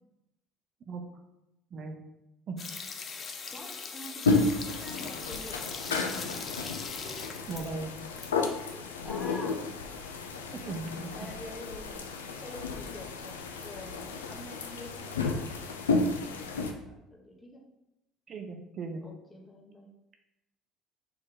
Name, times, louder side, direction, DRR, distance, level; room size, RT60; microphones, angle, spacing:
sound 1, 2.6-8.3 8.5-8.6, left 5 dB, 40° left, 0.7 m, -40 dB
voice 1, 3.5-6.3 9.0-9.8 11.1-17.7 19.0-19.9, left 1 dB, 20° left, 0 dB, 1.2 m, -47 dB
sound 2, 4.3-16.7, left 3 dB, 85° left, 0.4 m, -32 dB
voice 2, 7.5-8.0 10.5-11.3 18.3-19.0, right 3 dB, 45° right, 4 dB, 0.6 m, -38 dB
4.2 x 3.3 x 3.8 m, 0.90 s
hypercardioid pair, 65°, 0 cm